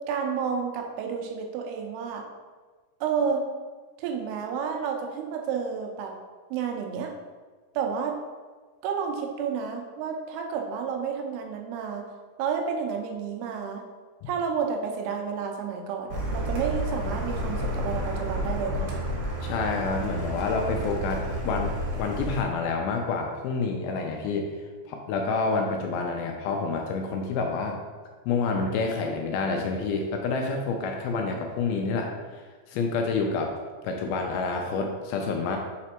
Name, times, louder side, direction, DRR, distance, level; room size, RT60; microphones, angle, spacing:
voice 1, 0.1-2.2 3.0-3.4 4.0-6.1 6.5-7.1 7.8-8.2 8.8-12.0 12.4-13.8 14.3-18.9, right 6 dB, 85° right, 2 dB, 2.6 m, -30 dB
Car, 16.1-22.4, right 1 dB, 65° right, 2.7 m, -31 dB
voice 2, 19.4-24.5 24.9-27.8 28.3-33.5 33.8-35.6, left 4 dB, 80° left, 2 dB, 2.3 m, -28 dB
5.9 x 4.2 x 4.4 m, 1.4 s
omnidirectional pair, 4.6 m